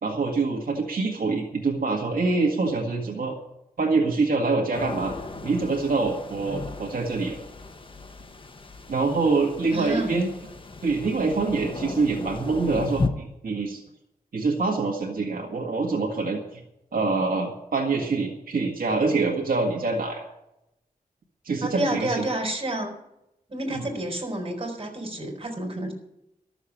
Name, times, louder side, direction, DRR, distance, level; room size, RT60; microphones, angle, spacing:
voice 1, 0.0-3.3 3.8-5.2 5.4-7.4 8.9-10.3 10.8-13.8 14.3-16.6 16.9-20.2 21.4-22.3, right 3 dB, 80° right, 0 dB, 1.9 m, -25 dB
sound 1, 4.7-13.1, left 3 dB, 35° left, 1.1 m, -35 dB
voice 2, 9.7-10.1 21.6-22.9 23.5-25.9, right 1 dB, 40° right, 2 dB, 4.2 m, -29 dB
13.5 x 7.2 x 8.5 m, 0.84 s
wide cardioid pair, 90°, 15 cm